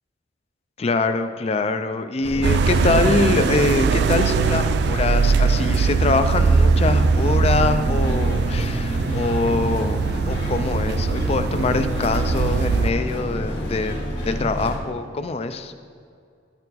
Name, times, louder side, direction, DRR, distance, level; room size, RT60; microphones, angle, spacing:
voice 1, 0.8-13.9 14.2-15.7, left 3 dB, 35° left, 9 dB, 0.4 m, -24 dB
sound 1, 2.2-14.8, equal, 75° left, 1.9 m, -28 dB
sound 2, 2.4-12.9, right 5 dB, 65° right, 0.3 m, -21 dB
12.0 x 4.4 x 4.0 m, 2.3 s
head